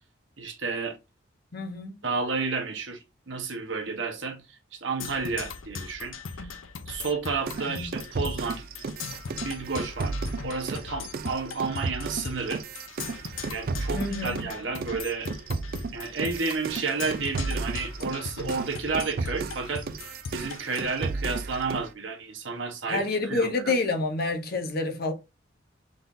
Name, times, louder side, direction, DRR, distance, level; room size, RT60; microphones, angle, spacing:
voice 1, 0.4-1.0 2.0-4.5 4.7-6.5 6.9-8.6 9.4-10.2 10.4-12.6 13.5-15.3 15.9-19.9 20.3-23.7, right 4 dB, 65° right, 1.1 m, -31 dB
voice 2, 1.5-2.0 7.7-7.9 13.9-14.4 22.9-25.1, left 3 dB, 50° left, 1.0 m, -28 dB
Percussion, 5.0-21.0, left 5 dB, 80° left, 0.6 m, -39 dB
sound 1, 7.5-14.5 14.8-21.9, right 3 dB, 50° right, 0.4 m, -34 dB
3.8 x 3.8 x 2.6 m
head